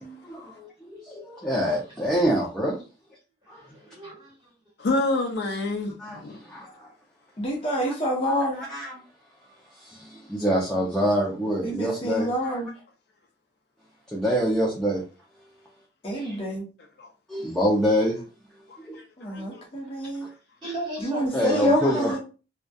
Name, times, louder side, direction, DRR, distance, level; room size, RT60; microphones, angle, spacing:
voice 1, 0.0-2.8 3.5-3.7 6.0-6.9 7.8-7.9 8.2-9.0 9.7-12.6 14.1-15.0 16.1-16.4 17.3-18.2 18.8-19.0 21.3-22.2, equal, 5° left, 0.4 m, -26 dB
voice 2, 3.4-4.5 20.0-20.1 20.6-22.2, right 1 dB, 25° right, 1.5 m, -37 dB
voice 3, 4.8-6.4 17.0-17.1 18.9-19.4, left 2 dB, 60° left, 0.4 m, -28 dB
voice 4, 7.4-8.6 11.6-12.7 16.0-16.6 19.2-20.3 21.0-22.2, equal, 30° left, 0.8 m, -27 dB
2.6 x 2.2 x 2.2 m
head